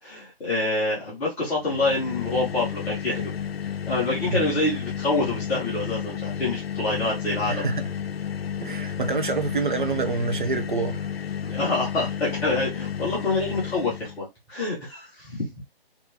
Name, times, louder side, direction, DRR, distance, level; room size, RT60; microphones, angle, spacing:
voice 1, 0.0-3.3 3.9-7.6 11.4-15.5, left 2 dB, 5° left, 0.7 m, -26 dB
sound 1, 1.6-14.2, left 8 dB, 75° left, 0.5 m, -32 dB
voice 2, 7.5-7.9 8.6-11.1, right 4 dB, 55° right, 0.9 m, -27 dB
4.3 x 2.9 x 2.9 m
figure-of-eight pair, 145°, 31 cm